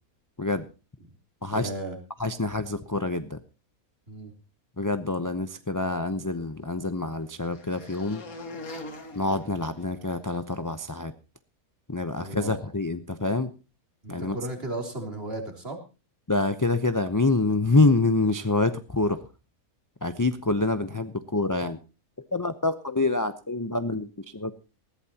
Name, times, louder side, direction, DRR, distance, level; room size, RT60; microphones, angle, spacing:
voice 1, 1.5-2.0 4.1-4.3 12.2-12.7 14.0-15.8, right 1 dB, 45° right, 3 dB, 3.5 m, -35 dB
voice 2, 2.2-3.4 4.8-8.2 9.1-11.1 11.9-13.5 14.1-14.4 16.3-19.2 20.0-21.8 22.3-24.5, left 2 dB, 20° left, 9 dB, 0.5 m, -26 dB
sound 1, 6.2-10.4, left 2 dB, 75° left, 2.4 m, -44 dB
20.0 x 15.0 x 2.9 m, 0.32 s
omnidirectional pair, 1.5 m